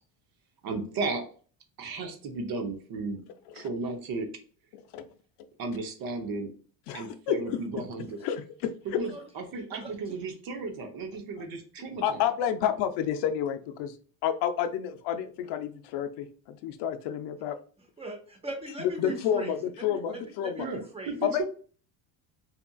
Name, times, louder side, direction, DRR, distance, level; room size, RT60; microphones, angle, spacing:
voice 1, 0.6-1.2 1.8-3.2 3.5-4.3 5.6-6.5 6.9-8.2 9.0-12.2 20.6-20.8 21.1-21.5, right 3 dB, 55° right, 5 dB, 0.7 m, -34 dB
voice 2, 6.9-7.4 8.2-9.0 11.4-11.5 12.0-13.9 14.2-17.6 18.8-19.6 19.8-20.7 21.2-21.5, left 9 dB, 70° left, 8 dB, 0.5 m, -30 dB
voice 3, 9.5-10.2 17.8-21.2, right 1 dB, 15° right, 3 dB, 0.8 m, -40 dB
2.8 x 2.4 x 2.2 m, 0.43 s
cardioid pair, 110°, 43 cm